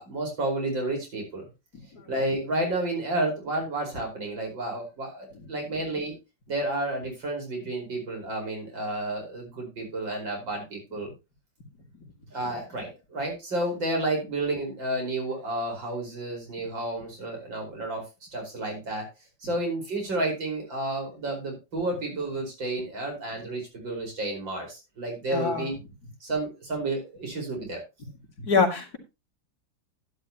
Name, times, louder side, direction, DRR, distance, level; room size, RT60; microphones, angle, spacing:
voice 1, 0.0-1.5 2.1-6.1 6.5-11.1 12.3-18.1 18.3-19.1 19.4-25.8 26.2-27.8, right 2 dB, 85° right, 2 dB, 5.6 m, -31 dB
voice 2, 25.3-25.7 28.4-29.0, left 4 dB, 55° left, 2 dB, 3.0 m, -24 dB
11.5 x 11.5 x 2.9 m, 0.26 s
omnidirectional pair, 2.0 m